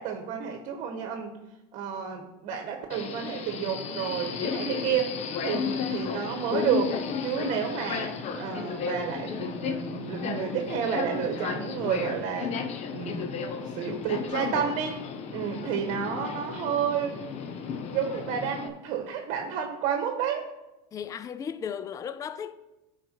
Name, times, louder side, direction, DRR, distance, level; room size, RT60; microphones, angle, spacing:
voice 1, 0.0-1.4 1.7-5.2 5.4-12.6 12.9-13.3 13.7-15.0 15.3-17.2 17.9-20.6, right 8 dB, 50° right, 1.4 m, -30 dB
Subway metro underground, 2.9-18.7, left 6 dB, 40° left, 1.0 m, -34 dB
voice 2, 20.9-22.5, left 7 dB, 20° left, 0.4 m, -35 dB
11.5 x 5.0 x 4.6 m
supercardioid pair, 120°, 16 cm